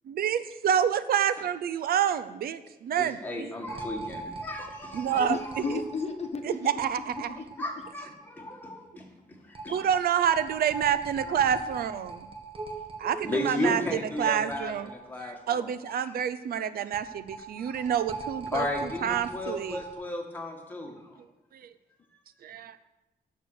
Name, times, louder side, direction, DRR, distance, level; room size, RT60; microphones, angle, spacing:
voice 1, 0.2-3.5 4.9-5.4 6.5-7.3 9.7-12.2 13.0-14.9 15.2-19.8 22.4-22.7, right 9 dB, 75° right, 14 dB, 0.5 m, -28 dB
voice 2, 3.0-5.4 7.6-9.4 9.6-9.8 13.2-16.1 17.5-17.9 18.5-21.0, left 2 dB, 10° left, 0 dB, 1.7 m, -35 dB
sound 1, 3.7-7.9 8.2-8.3 8.6-8.7 9.5-15.3 15.6-15.7 16.9-19.9, right 3 dB, 35° right, 1.3 m, -40 dB
voice 3, 5.3-7.6, left 5 dB, 45° left, 6 dB, 1.0 m, -35 dB
9.1 x 6.5 x 6.4 m, 1.0 s
wide cardioid pair, 135°, 16 cm